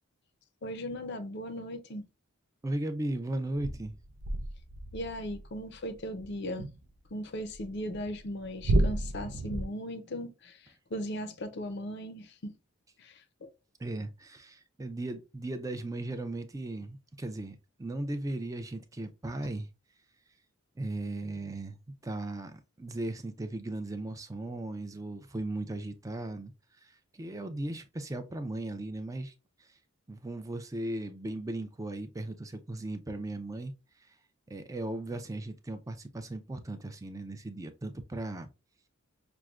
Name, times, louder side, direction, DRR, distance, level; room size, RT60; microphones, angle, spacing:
voice 1, 0.6-2.0 4.9-6.7 7.1-12.6 13.0-13.5, equal, 50° left, 0.5 m, -38 dB
voice 2, 2.6-4.0 13.8-19.7 20.8-21.8 22.0-26.5 26.8-29.3 29.6-29.8 30.1-33.7 34.0-34.2 34.5-38.5, right 2 dB, 15° right, 0.4 m, -37 dB
Kitchen Sink Contact Mic Recording (Geofon), 3.6-7.1 7.5-9.6, right 1 dB, 75° right, 0.5 m, -32 dB
5.9 x 2.1 x 2.3 m
head